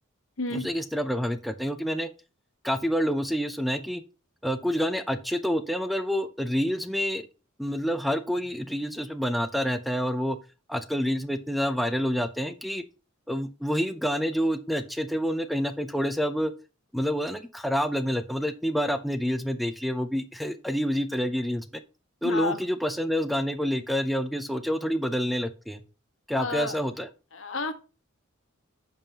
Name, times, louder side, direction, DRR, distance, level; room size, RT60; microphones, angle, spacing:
voice 1, 0.5-2.1 2.6-4.0 4.4-7.2 7.6-10.4 10.7-12.8 13.3-16.5 16.9-21.7 22.2-25.8 26.3-27.1, equal, ahead, 9 dB, 0.5 m, -28 dB
voice 2, 22.2-22.6 26.3-26.8 27.3-27.7, left 3 dB, 70° left, 8 dB, 1.3 m, -31 dB
14.5 x 5.4 x 2.8 m, 0.32 s
head